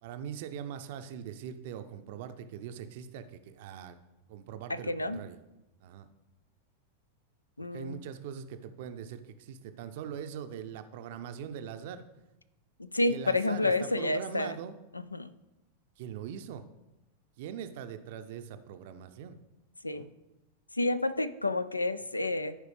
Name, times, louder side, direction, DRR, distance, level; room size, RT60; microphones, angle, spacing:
voice 1, 0.0-4.0 4.3-5.4 5.8-6.1 7.6-12.0 13.1-14.8 16.0-16.6 17.4-19.4 19.9-20.1, right 8 dB, 50° right, 10 dB, 0.6 m, -42 dB
voice 2, 4.7-5.2 7.6-7.9 12.9-14.5 15.1-15.3 19.8-20.1 20.8-22.6, left 2 dB, 85° left, 14 dB, 0.3 m, -29 dB
13.5 x 4.8 x 3.3 m, 1.0 s
figure-of-eight pair, 90°, 0 cm